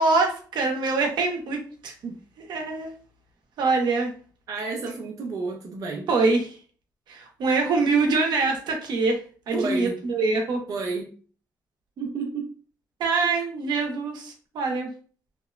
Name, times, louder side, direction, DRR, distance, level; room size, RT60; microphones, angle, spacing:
voice 1, 0.0-1.9 2.4-2.9 3.6-4.1 6.1-6.6 7.1-9.2 9.5-10.6 13.0-14.9, right 3 dB, 90° right, 2 dB, 0.7 m, -24 dB
voice 2, 4.5-6.1 9.5-10.0 10.7-11.1 12.0-12.5, right 4 dB, 55° right, 1 dB, 0.4 m, -30 dB
2.8 x 2.0 x 2.2 m, 0.41 s
wide cardioid pair, 160°, 7 cm